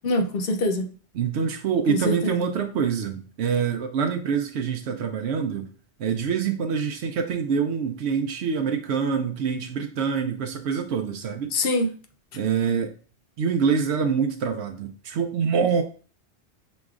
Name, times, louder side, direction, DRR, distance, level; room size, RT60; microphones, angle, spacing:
voice 1, 0.0-0.9 1.9-2.4 11.5-11.9, left 2 dB, 65° left, 6 dB, 0.8 m, -24 dB
voice 2, 1.1-5.7 6.0-11.5 12.3-12.9 13.4-15.8, right 6 dB, 80° right, 4 dB, 0.8 m, -25 dB
6.1 x 3.1 x 2.4 m, 0.39 s
omnidirectional pair, 1.1 m